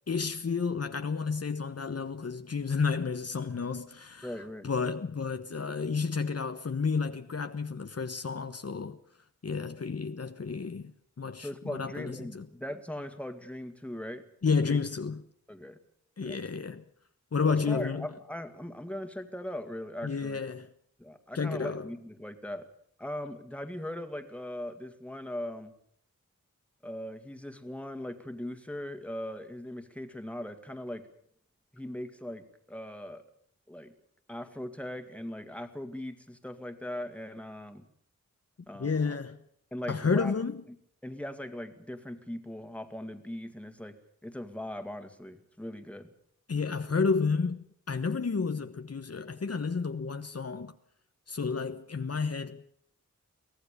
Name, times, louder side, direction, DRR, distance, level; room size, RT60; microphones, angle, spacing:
voice 1, 0.1-4.3 4.6-9.0 9.4-10.9 11.2-12.5 14.4-15.2 16.2-16.8 17.3-18.1 20.0-20.7 21.3-21.9 38.8-39.4 39.9-40.6 46.5-50.7 51.3-52.7, left 5 dB, 55° left, 1.2 m, -31 dB
voice 2, 4.2-4.7 11.4-14.3 14.7-14.8 15.5-15.8 16.2-16.4 17.4-20.4 21.0-22.7 23.0-25.7 26.8-31.1 31.7-33.2 33.7-33.9 34.3-37.9 38.7-39.2 39.7-40.3 41.0-46.1, left 1 dB, 5° left, 2.3 m, -40 dB
23.5 x 17.5 x 6.9 m
wide cardioid pair, 80°, 29 cm